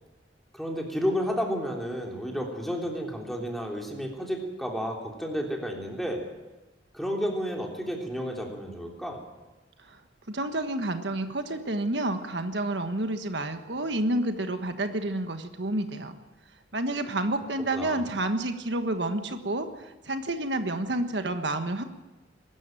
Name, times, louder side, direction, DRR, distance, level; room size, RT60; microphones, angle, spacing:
voice 1, 0.5-6.2 6.9-9.2 17.7-18.0, equal, ahead, 0 dB, 3.4 m, -31 dB
voice 2, 10.3-16.2 16.7-21.8, right 1 dB, 70° right, 7 dB, 1.5 m, -29 dB
22.5 x 13.5 x 9.1 m, 1.2 s
head